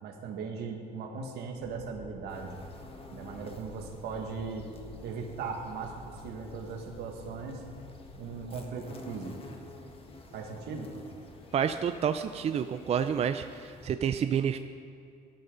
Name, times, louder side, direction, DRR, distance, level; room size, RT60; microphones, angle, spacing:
voice 1, 0.0-2.6 3.1-4.7 5.0-7.6 8.1-9.5 10.3-10.9, right 5 dB, 75° right, 3 dB, 1.9 m, -38 dB
Purr, 1.5-8.5, left 5 dB, 85° left, 1.3 m, -51 dB
sound 1, 2.3-13.9, left 2 dB, 35° left, 1.7 m, -50 dB
voice 2, 11.5-14.6, right 8 dB, 40° right, 9 dB, 0.5 m, -29 dB
18.0 x 12.5 x 4.0 m, 2.5 s
cardioid pair, 110°, 17 cm